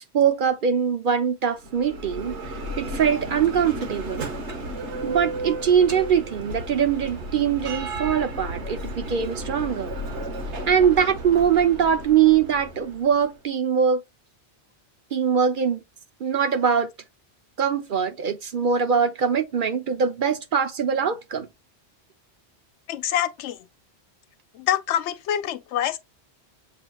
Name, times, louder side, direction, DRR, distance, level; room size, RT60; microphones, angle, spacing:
voice 1, 0.0-2.4 2.8-4.3 5.0-9.9 10.7-14.0 15.1-15.8 16.2-16.9 17.6-21.5, right 7 dB, 55° right, 0.7 m, -22 dB
Bell, 1.5-13.3, right 1 dB, 80° right, 1.4 m, -34 dB
voice 2, 22.9-23.6 24.6-26.0, left 11 dB, 85° left, 0.9 m, -25 dB
7.5 x 2.9 x 2.3 m
omnidirectional pair, 1.2 m